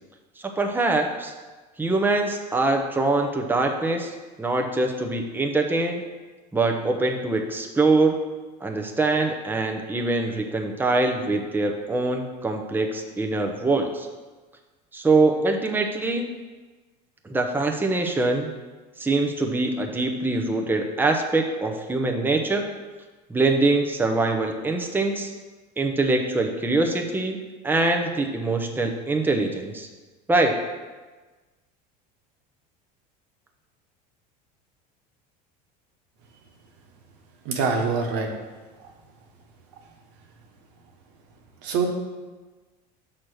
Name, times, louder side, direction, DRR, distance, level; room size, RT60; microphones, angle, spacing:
voice 1, 0.6-1.3 1.8-6.0 6.5-8.2 8.6-14.1 14.9-16.3 17.2-18.5 19.0-22.6 23.3-25.3 25.8-27.4 27.6-29.9 30.3-30.6, right 2 dB, 10° right, 3 dB, 0.8 m, -23 dB
voice 2, 37.4-38.3 41.6-41.9, right 5 dB, 75° right, 2 dB, 1.4 m, -24 dB
6.2 x 4.4 x 6.3 m, 1.3 s
supercardioid pair, 100°, 21 cm